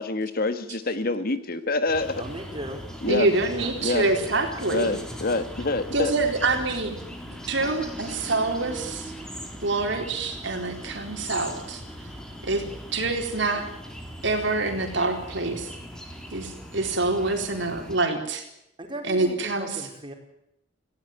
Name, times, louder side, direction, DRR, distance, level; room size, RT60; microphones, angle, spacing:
voice 1, 0.0-2.2 3.0-3.3 3.8-4.0 4.7-6.1 7.6-7.8, left 2 dB, 50° left, 12 dB, 1.6 m, -26 dB
sound 1, 1.9-18.0, equal, 5° left, 3.9 m, -40 dB
voice 2, 2.1-2.8 3.5-3.7 18.8-20.1, right 1 dB, 25° right, 4 dB, 4.7 m, -37 dB
voice 3, 3.1-5.0 5.9-7.0 7.3-9.1 9.6-11.8 12.4-12.6 12.9-13.7 14.2-15.7 16.3-18.4 19.0-19.9, right 2 dB, 65° right, 5 dB, 4.2 m, -26 dB
18.5 x 17.0 x 9.3 m, 0.80 s
head